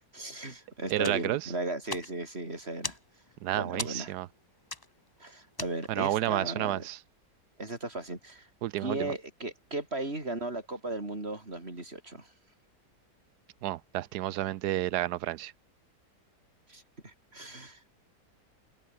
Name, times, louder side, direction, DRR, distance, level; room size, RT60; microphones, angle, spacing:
voice 1, 0.1-3.0 3.5-4.1 5.2-6.8 7.6-8.5 8.8-12.3 16.7-17.8, right 2 dB, 35° right, 5.8 m, -36 dB
voice 2, 0.9-1.5 3.4-4.3 5.9-7.0 8.6-9.1 13.6-15.5, right 14 dB, 75° right, 1.2 m, -31 dB
sound 1, 1.0-6.2, left 2 dB, 15° left, 1.3 m, -42 dB
omnidirectional pair, 1.8 m